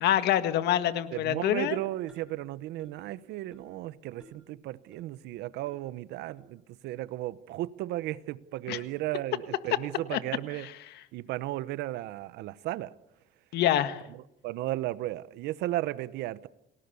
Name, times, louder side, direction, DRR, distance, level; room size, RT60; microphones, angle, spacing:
voice 1, 0.0-1.8 8.7-8.8 10.1-10.2 10.6-10.7 13.5-14.0, left 11 dB, 75° left, 1.7 m, -26 dB
voice 2, 1.1-10.7 11.1-12.9 14.4-16.5, right 15 dB, 85° right, 1.0 m, -35 dB
sound 1, 2.1-2.4 2.8-3.1 3.5-3.8 4.2-4.5 4.9-5.0 5.7-5.8 6.4-6.5 7.2-7.3 7.9-8.1, right 1 dB, 5° right, 7.0 m, -55 dB
29.5 x 19.5 x 7.0 m
cardioid pair, 110°, 17 cm